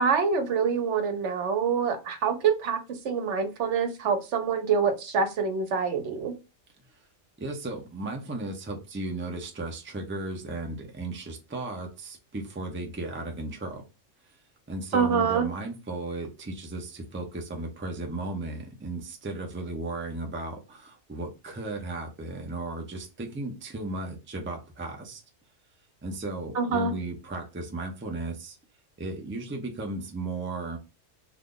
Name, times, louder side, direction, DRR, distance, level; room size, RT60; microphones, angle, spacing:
voice 1, 0.0-2.8 3.0-6.3 14.9-15.5 26.6-26.9, right 6 dB, 80° right, 7 dB, 1.0 m, -25 dB
voice 2, 7.4-13.8 14.7-25.2 26.0-28.6 29.0-30.8, right 2 dB, 15° right, 3 dB, 0.5 m, -35 dB
2.7 x 2.4 x 3.6 m, 0.28 s
omnidirectional pair, 1.2 m